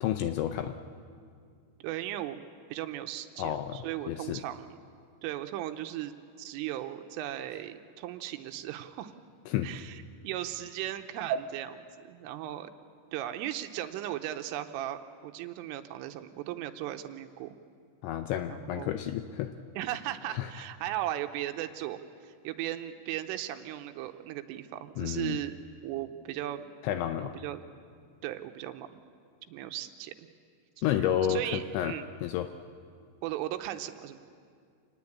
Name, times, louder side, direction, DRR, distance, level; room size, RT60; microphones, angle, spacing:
voice 1, 0.0-0.7 3.4-4.4 9.5-9.7 18.0-19.5 20.3-20.5 25.0-25.4 26.8-27.4 30.8-32.5, left 11 dB, 80° left, 8 dB, 2.7 m, -31 dB
voice 2, 1.8-2.4 2.7-4.8 5.2-6.1 6.4-9.1 9.6-12.7 13.1-17.5 18.5-18.9 19.8-25.6 25.8-26.6 27.2-27.6 28.2-28.9 29.5-30.3 30.8-30.9 31.3-32.1 33.2-34.2, right 12 dB, 80° right, 7 dB, 3.3 m, -37 dB
27.0 x 19.5 x 8.6 m, 2.2 s
omnidirectional pair, 6.0 m